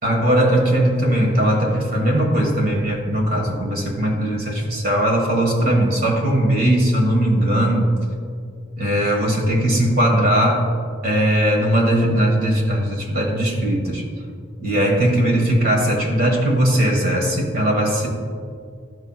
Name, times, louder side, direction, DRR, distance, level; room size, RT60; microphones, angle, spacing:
voice 1, 0.0-7.9 8.8-10.7 11.0-14.0 14.6-18.1, right 1 dB, 50° right, 0 dB, 1.6 m, -19 dB
13.0 x 5.7 x 2.4 m, 2.2 s
head